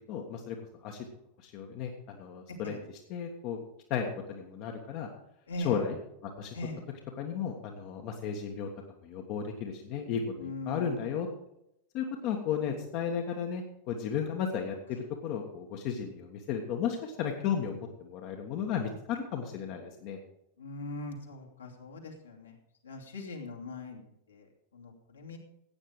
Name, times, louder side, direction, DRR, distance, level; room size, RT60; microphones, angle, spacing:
voice 1, 0.1-0.6 0.8-1.0 1.4-2.7 3.1-3.6 3.9-5.1 5.6-6.0 6.2-6.5 7.2-8.7 9.0-11.3 11.9-20.2, left 7 dB, 45° left, 2 dB, 1.5 m, -34 dB
voice 2, 5.5-5.8 6.5-6.8 10.3-11.0 20.6-22.6 22.8-24.5 24.7-25.4, left 2 dB, 70° left, 0 dB, 2.6 m, -41 dB
15.5 x 9.1 x 4.8 m, 0.82 s
figure-of-eight pair, 90°, 0 cm